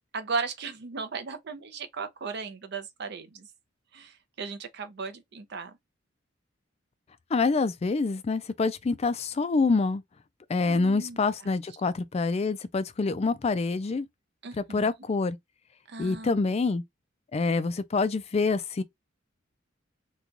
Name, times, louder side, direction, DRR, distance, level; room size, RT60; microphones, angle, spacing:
voice 1, 0.1-3.5 3.9-5.8 10.6-11.2 11.4-11.5 14.4-14.9 15.9-16.5, right 4 dB, 60° right, 0.6 m, -36 dB
voice 2, 7.3-10.0 10.5-14.1 14.6-15.4 16.0-16.8 17.3-18.8, left 4 dB, 30° left, 0.4 m, -26 dB
2.9 x 2.3 x 3.8 m
head